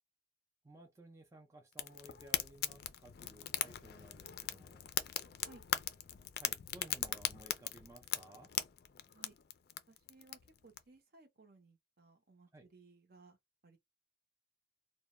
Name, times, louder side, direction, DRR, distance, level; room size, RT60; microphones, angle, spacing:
voice 1, 0.6-4.9 6.4-8.5 12.5-12.7, right 1 dB, 15° right, 0.4 m, -57 dB
Fire, 1.7-10.8, left 11 dB, 60° left, 0.3 m, -40 dB
voice 2, 9.9-13.4 13.6-13.8, right 3 dB, 55° right, 0.7 m, -61 dB
2.2 x 2.1 x 2.9 m
head